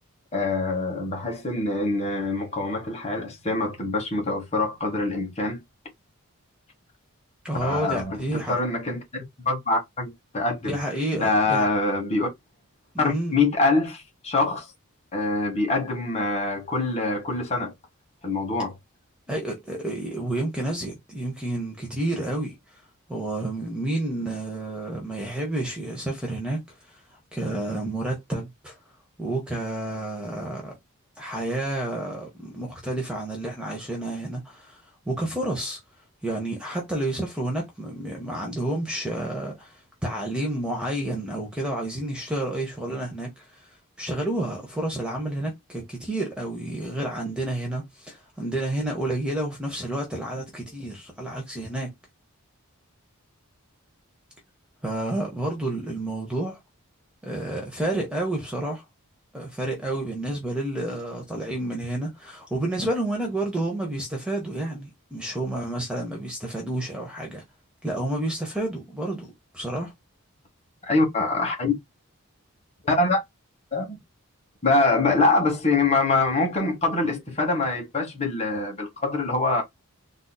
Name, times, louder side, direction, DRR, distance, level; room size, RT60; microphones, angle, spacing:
voice 1, 0.3-5.6 7.6-10.8 11.1-12.3 13.0-14.7 15.1-17.7 18.2-18.7 70.8-71.7 72.8-73.2 73.7-74.0 74.6-79.6, left 3 dB, 30° left, 1.2 m, -24 dB
voice 2, 7.4-8.6 10.6-11.6 12.9-13.3 19.3-22.8 23.1-28.8 29.2-30.7 31.2-35.8 36.2-43.7 44.0-51.9 54.8-56.6 57.2-58.8 59.3-67.4 67.8-69.9, right 1 dB, 5° right, 0.7 m, -30 dB
3.8 x 2.6 x 2.2 m
head